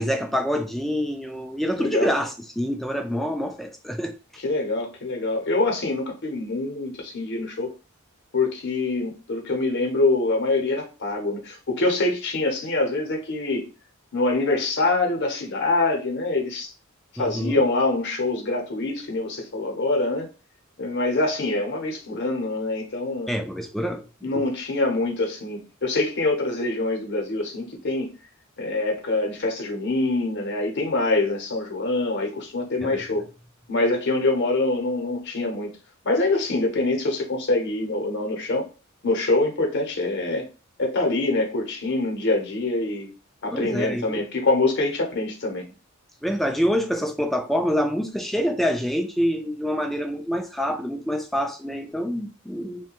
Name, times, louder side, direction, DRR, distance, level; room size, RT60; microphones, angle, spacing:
voice 1, 0.0-4.2 17.2-17.6 23.3-24.4 32.8-33.0 43.5-44.2 46.2-52.9, equal, ahead, 0.3 m, -26 dB
voice 2, 1.8-2.1 4.4-7.7 8.3-13.7 14.1-16.7 17.2-20.3 20.8-23.3 24.2-28.1 28.6-33.3 33.7-35.7 36.0-38.7 39.0-40.5 40.8-43.1 43.4-45.7, left 2 dB, 55° left, 0.8 m, -25 dB
3.2 x 2.2 x 2.9 m
head